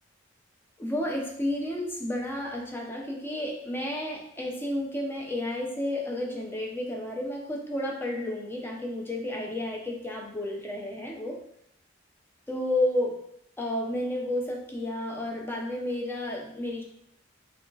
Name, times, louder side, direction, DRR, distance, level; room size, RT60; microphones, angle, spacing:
voice 1, 0.8-11.4 12.5-13.2 13.6-16.8, left 1 dB, 10° left, -1 dB, 0.6 m, -31 dB
3.5 x 2.4 x 3.9 m, 0.71 s
head